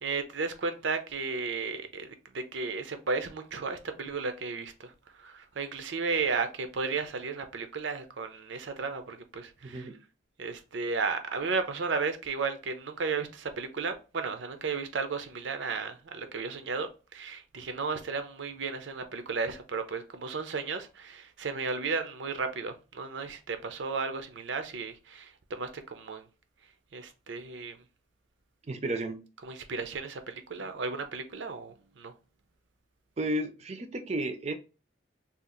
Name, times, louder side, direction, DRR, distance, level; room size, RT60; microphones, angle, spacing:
voice 1, 0.0-2.1 2.3-4.9 5.2-9.9 10.4-26.3 26.9-27.8 29.4-32.1, right 4 dB, 85° right, 0.6 m, -34 dB
voice 2, 9.6-10.0 28.7-29.2 30.6-30.7 33.2-34.5, right 1 dB, 35° right, 0.5 m, -33 dB
2.8 x 2.4 x 3.7 m
head